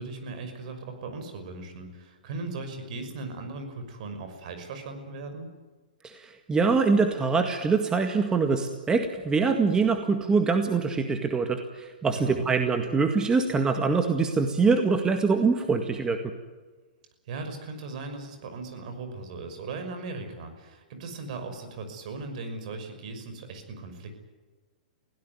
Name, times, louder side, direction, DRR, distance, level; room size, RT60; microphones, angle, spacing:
voice 1, 0.0-5.5 12.1-12.5 17.3-24.2, right 3 dB, 55° right, 6 dB, 6.1 m, -38 dB
voice 2, 6.0-16.2, right 4 dB, 15° right, 5 dB, 1.9 m, -24 dB
22.5 x 17.0 x 9.6 m, 1.3 s
hypercardioid pair, 115°, 5 cm